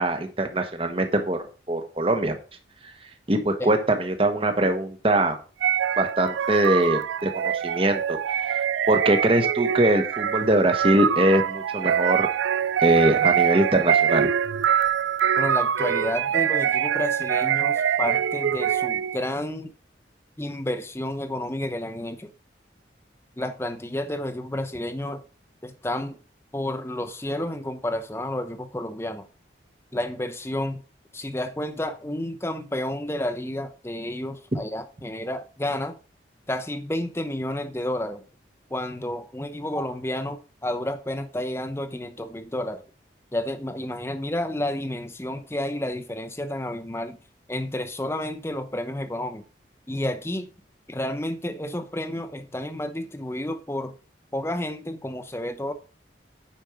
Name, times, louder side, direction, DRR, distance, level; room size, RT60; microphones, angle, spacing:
voice 1, 0.0-2.4 3.3-5.4 6.0-12.3 12.8-14.3 34.5-34.6, right 1 dB, 30° right, 1.3 m, -22 dB
sound 1, 5.6-19.3, right 9 dB, 80° right, 0.3 m, -24 dB
voice 2, 15.4-19.7 20.4-22.3 23.4-25.2 25.6-26.2 26.5-29.3 29.9-30.8 31.1-36.0 36.5-38.2 38.7-42.8 43.3-47.2 47.5-49.4 49.9-50.5 50.9-54.0 54.3-55.7, left 1 dB, 15° left, 0.8 m, -30 dB
9.1 x 5.3 x 5.0 m
head